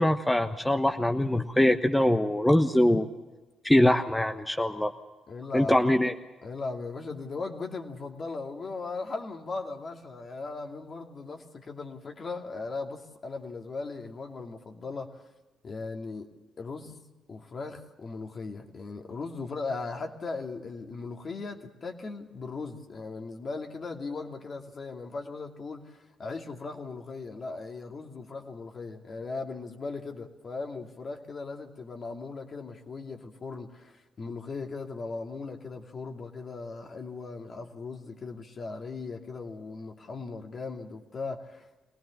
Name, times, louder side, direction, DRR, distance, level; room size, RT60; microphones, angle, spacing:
voice 1, 0.0-3.1 3.6-4.9 5.5-6.1, left 1 dB, 10° left, 6 dB, 1.2 m, -23 dB
voice 2, 5.3-5.8 6.4-15.2 15.6-16.3 16.6-41.9, left 3 dB, 50° left, 3 dB, 2.7 m, -38 dB
23.5 x 19.0 x 7.3 m, 1.1 s
hypercardioid pair, 45°, 0 cm